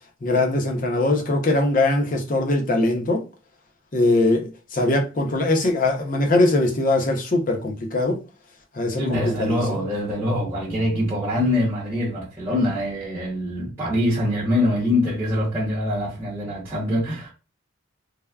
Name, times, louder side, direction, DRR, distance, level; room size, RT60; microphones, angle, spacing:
voice 1, 0.2-3.2 3.9-8.2 8.7-9.8, left 2 dB, 40° left, 0.5 m, -21 dB
voice 2, 8.9-17.3, left 1 dB, 10° right, 0.8 m, -24 dB
3.3 x 2.0 x 2.2 m
head